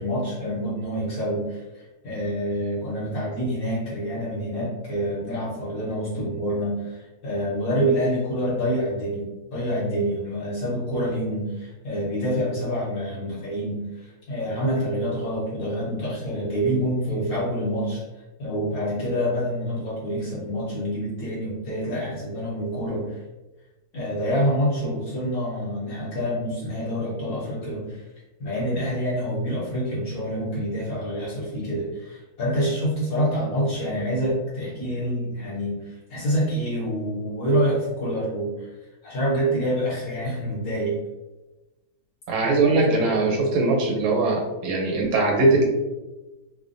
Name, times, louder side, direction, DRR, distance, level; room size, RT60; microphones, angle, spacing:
voice 1, 0.0-18.0 18.4-23.2 23.9-28.0 28.4-38.7 39.0-41.0 42.3-43.1, equal, 55° left, -6 dB, 1.1 m, -27 dB
voice 2, 42.3-45.6, right 2 dB, 90° right, 0 dB, 1.6 m, -21 dB
3.3 x 2.2 x 2.5 m, 1.1 s
omnidirectional pair, 2.2 m